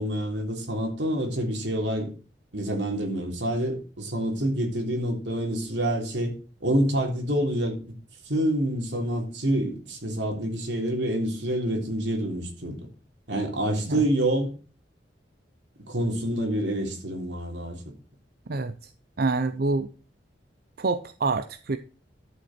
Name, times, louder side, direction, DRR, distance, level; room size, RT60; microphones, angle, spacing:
voice 1, 0.0-2.1 2.5-6.3 6.6-7.8 8.3-12.8 13.3-14.5 15.8-17.8, right 1 dB, 85° right, 3.3 m, -27 dB
voice 2, 18.5-18.9 19.2-19.9 20.8-21.8, right 3 dB, 60° right, 0.6 m, -27 dB
11.5 x 7.4 x 4.2 m
head